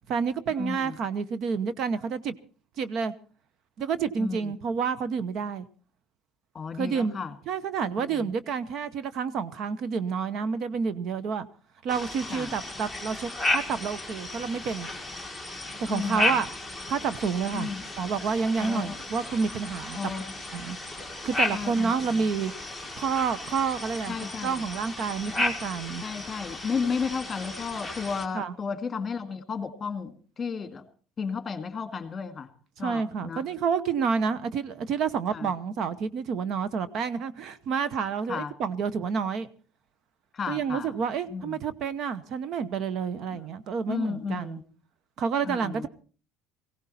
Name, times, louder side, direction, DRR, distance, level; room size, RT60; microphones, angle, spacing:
voice 1, 0.1-2.3 2.8-3.1 3.8-5.7 6.7-11.5 11.8-14.9 15.8-16.5 16.9-17.7 18.0-20.1 20.5-20.8 21.2-22.5 23.0-24.2 24.4-26.0 28.3-28.5 32.8-39.5 40.5-44.6 45.2-45.9, right 6 dB, 50° right, 0.9 m, -29 dB
voice 2, 0.6-0.9 4.2-4.5 6.5-7.3 7.9-8.3 12.3-12.5 15.9-16.4 17.5-17.8 18.7-18.9 19.9-20.2 21.5-22.2 24.1-24.6 25.4-25.5 26.0-30.8 31.2-32.5 32.8-33.4 35.3-35.5 38.3-38.5 40.3-40.9 41.3-41.5 43.9-44.6 45.4-45.9, left 5 dB, 25° left, 2.0 m, -33 dB
sound 1, 11.9-28.3, left 2 dB, 5° right, 1.9 m, -34 dB
19.0 x 16.5 x 4.2 m
cardioid pair, 135°, 0 cm